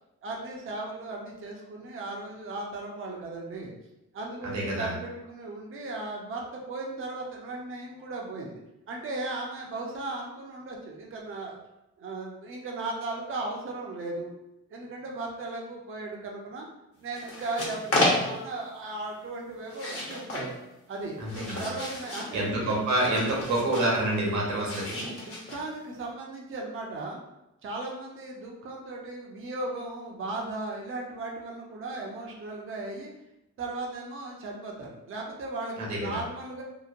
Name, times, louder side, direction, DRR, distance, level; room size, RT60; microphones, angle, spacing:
voice 1, 0.2-3.7 4.1-8.6 8.9-11.6 12.0-14.3 14.7-16.7 17.0-20.5 20.9-21.2 21.6-22.7 25.0-27.2 27.6-33.1 33.6-36.6, right 2 dB, 40° right, -1 dB, 0.6 m, -36 dB
voice 2, 4.4-4.9 21.2-21.6 22.3-25.0 35.8-36.1, right 1 dB, 65° right, -3 dB, 1.1 m, -27 dB
sound 1, 17.1-18.6 19.6-20.5 21.0-22.3 23.0-23.9 24.6-25.8, left 1 dB, 45° left, 1.0 m, -31 dB
2.8 x 2.1 x 2.5 m, 0.89 s
cardioid pair, 90°, 32 cm